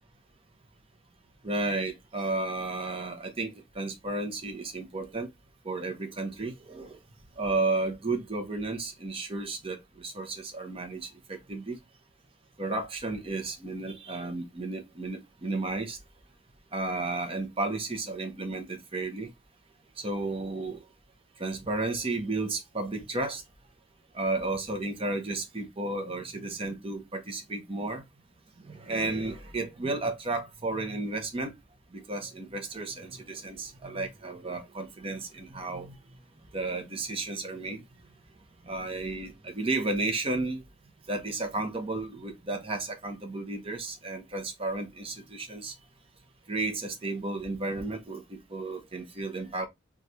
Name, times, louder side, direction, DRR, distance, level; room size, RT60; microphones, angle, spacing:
voice 1, 1.4-5.3 5.6-7.0 7.4-11.8 12.6-16.0 16.7-19.3 20.0-20.8 21.4-23.4 24.1-28.0 28.6-31.5 31.9-35.9 36.5-37.8 38.6-40.6 41.1-45.7 46.5-49.7, right 2 dB, 30° right, 0.8 m, -33 dB
3.1 x 2.4 x 4.0 m
head